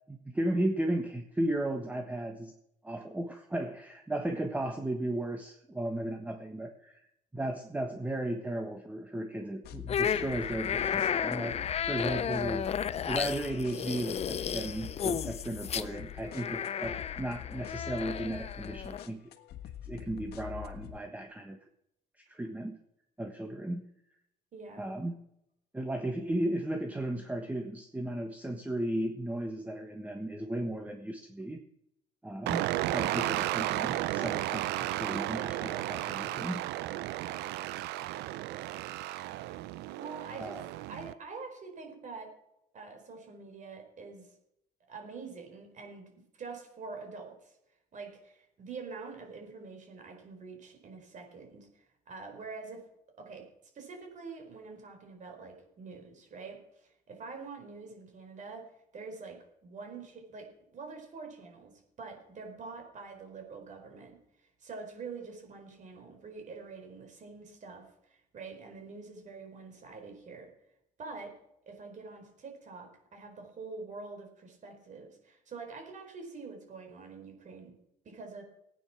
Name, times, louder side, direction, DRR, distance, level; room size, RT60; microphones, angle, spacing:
voice 1, 0.1-2.5 2.8-7.0 7.3-12.8 13.1-19.2 19.8-21.6 22.2-22.8 23.2-23.9 24.8-25.2 25.7-31.6 32.2-36.7 40.4-40.6, right 1 dB, 10° right, 5 dB, 1.4 m, -35 dB
sound 1, 9.6-21.0, left 11 dB, 75° left, 1.5 m, -45 dB
sound 2, 9.9-19.1, left 8 dB, 40° left, 0.7 m, -33 dB
voice 2, 24.5-24.9 40.0-40.5 40.9-42.3 42.7-44.3 44.9-46.1 46.4-47.6 47.9-52.8 53.2-53.5 53.7-61.7 62.0-64.2 64.6-70.5 71.0-71.4 71.7-77.7 78.0-78.4, right 4 dB, 45° right, 4 dB, 4.6 m, -45 dB
sound 3, 32.5-41.1, right 15 dB, 85° right, 0.6 m, -34 dB
17.0 x 9.2 x 6.1 m, 0.80 s
cardioid pair, 110°, 17 cm